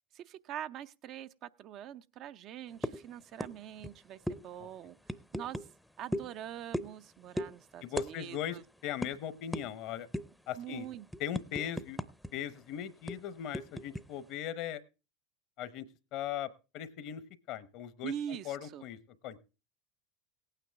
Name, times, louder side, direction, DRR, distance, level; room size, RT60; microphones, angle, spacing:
voice 1, 0.1-5.0 5.3-5.6 6.0-8.6 10.5-11.1 11.6-11.7 18.0-18.8, right 10 dB, 50° right, 0.5 m, -43 dB
sound 1, 2.8-3.0 3.4-3.5 3.8-3.9 4.3-4.4 5.1-5.7 6.1-6.3 6.7-7.0 7.4-7.5 8.0-8.1 8.4-8.5 9.0-9.1 9.5-9.7 10.1-10.4 10.8-12.3 12.6-12.7 13.1-14.0, equal, ahead, 0.6 m, -36 dB
voice 2, 7.8-8.6 8.8-10.1 10.5-10.9 11.2-12.0 12.3-14.8 15.6-15.9 16.1-16.5 16.7-17.2 17.5-19.0 19.2-19.5, left 10 dB, 55° left, 0.9 m, -39 dB
17.0 x 9.1 x 3.4 m
hypercardioid pair, 90°, 0 cm